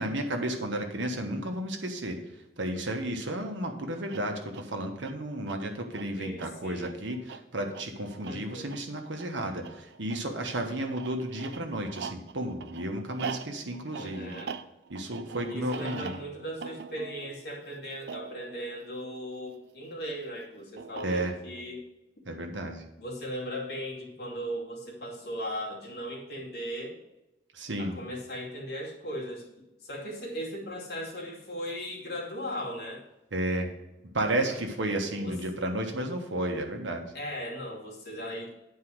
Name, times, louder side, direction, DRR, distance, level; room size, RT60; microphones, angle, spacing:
voice 1, 0.0-2.2 2.6-14.3 14.9-16.1 21.0-21.3 22.3-22.8 27.5-28.0 33.3-33.7 34.1-37.1, right 1 dB, 90° right, 4 dB, 1.3 m, -32 dB
sound 1, 4.0-19.7 20.8-21.6, right 5 dB, 70° right, 0.4 m, -43 dB
voice 2, 6.2-6.9 8.3-8.7 13.9-14.6 15.5-21.8 23.0-27.0 27.8-29.4 29.8-33.0 35.2-35.4 37.1-38.5, equal, 60° left, -3 dB, 2.4 m, -38 dB
9.7 x 4.7 x 6.2 m, 0.94 s
head